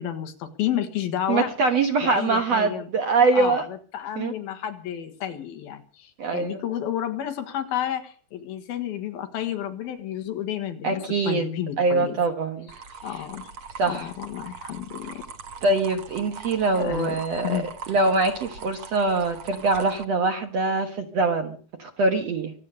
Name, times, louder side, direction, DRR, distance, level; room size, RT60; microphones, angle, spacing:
voice 1, 0.0-1.5 2.0-2.9 3.3-3.6 3.9-12.2 13.0-13.5 13.9-15.2 16.8-17.7, left 10 dB, 70° left, 8 dB, 3.3 m, -31 dB
voice 2, 1.3-3.6 4.2-4.3 6.2-6.6 10.8-11.5 11.8-12.7 13.8-14.1 15.6-22.5, right 3 dB, 60° right, 6 dB, 1.9 m, -23 dB
sound 1, 12.7-20.0, right 5 dB, 90° right, 1.1 m, -41 dB
24.0 x 8.5 x 6.7 m, 0.42 s
omnidirectional pair, 4.5 m